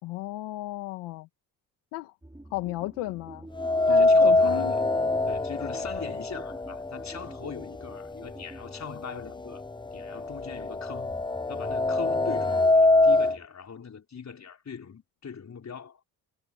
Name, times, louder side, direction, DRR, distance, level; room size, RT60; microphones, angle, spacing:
voice 1, 0.0-1.3 1.9-2.1 2.5-3.5 3.9-4.7, left 18 dB, 85° left, 2.2 m, -34 dB
sound 1, 2.2-13.5, right 1 dB, 10° right, 4.9 m, -49 dB
sound 2, 3.6-7.6 8.0-8.1 9.0-9.1 9.5-13.4, left 2 dB, 10° left, 0.7 m, -23 dB
voice 2, 3.9-4.8 5.3-9.6 9.9-11.1 11.5-16.0, left 6 dB, 40° left, 4.2 m, -41 dB
supercardioid pair, 60°, 41 cm